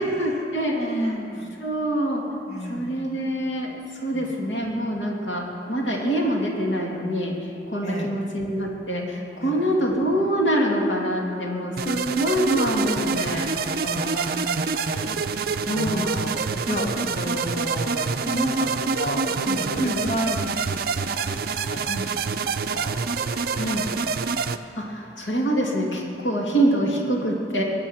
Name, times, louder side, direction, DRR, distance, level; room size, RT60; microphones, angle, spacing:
voice 1, 0.0-1.1 1.6-2.2 2.7-3.7 4.0-7.3 7.7-13.5 15.7-16.1 19.8-20.0 21.9-22.0 23.6-23.8 24.8-27.6, right 1 dB, 85° left, -2 dB, 2.8 m, -25 dB
voice 2, 0.7-1.6 2.5-3.0 4.1-4.3 7.8-8.1 9.4-9.5 13.8-15.1 15.7-16.3 16.7-21.1 21.7-22.2 22.7-23.0 23.5-23.7, equal, 40° left, 0 dB, 2.0 m, -31 dB
sound 1, 11.8-24.6, right 5 dB, 55° right, 0.6 m, -26 dB
22.0 x 8.8 x 6.0 m, 2.5 s
head